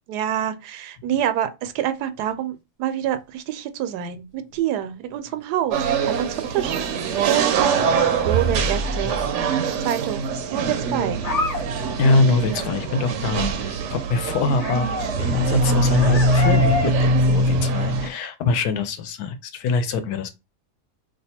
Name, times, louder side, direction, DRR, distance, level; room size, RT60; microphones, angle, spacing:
voice 1, 0.1-10.2 10.5-11.3, right 10 dB, 90° right, 1.1 m, -27 dB
sound 1, 1.8-1.9 2.2-2.3 5.1-6.3 6.9-7.0 7.4-7.5 9.7-10.2 10.6-10.7 11.1-11.6 12.0-12.1 12.3-12.7 12.9-13.4 14.6-16.9 17.2-17.3, left 2 dB, 40° left, 0.5 m, -30 dB
sound 2, 5.7-18.1, right 2 dB, 70° right, 0.7 m, -22 dB
voice 2, 12.0-20.3, left 3 dB, 75° left, 1.1 m, -24 dB
2.8 x 2.3 x 4.2 m
omnidirectional pair, 1.7 m